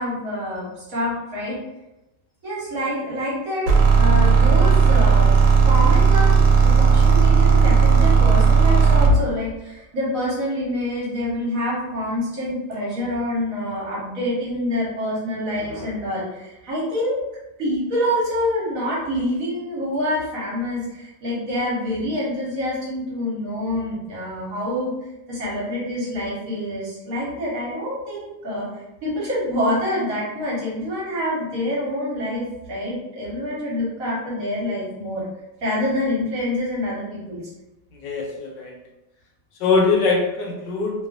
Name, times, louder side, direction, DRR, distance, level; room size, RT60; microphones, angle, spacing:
voice 1, 0.0-1.6 2.4-3.7 4.0-5.3 5.6-17.2 17.6-24.9 25.3-28.7 29.0-35.2 35.6-37.4, left 1 dB, 55° right, -6 dB, 1.2 m, -26 dB
sound 1, 3.7-9.2, right 5 dB, 80° right, 1.3 m, -14 dB
voice 2, 38.0-38.7 39.6-41.1, left 4 dB, 80° left, 1 dB, 1.3 m, -22 dB
3.0 x 2.3 x 2.4 m, 0.96 s
omnidirectional pair, 1.9 m